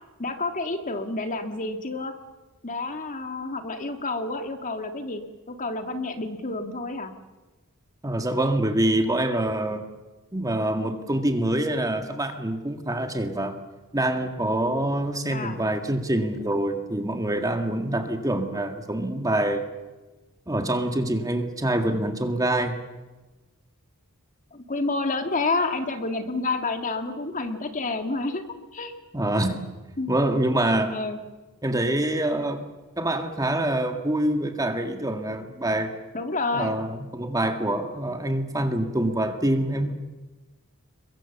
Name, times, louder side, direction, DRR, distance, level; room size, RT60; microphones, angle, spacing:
voice 1, 0.2-2.1 2.6-7.1 15.3-15.6 24.5-28.9 30.0-30.1 30.9-31.2 36.1-36.8, left 3 dB, 35° left, 6 dB, 2.0 m, -29 dB
voice 2, 8.0-9.9 10.3-13.6 13.9-19.7 20.5-22.8 29.1-29.6 30.1-30.9 31.6-32.6 33.0-35.9 36.5-40.0, right 1 dB, 15° right, 6 dB, 2.0 m, -25 dB
29.5 x 22.5 x 7.2 m, 1.2 s
head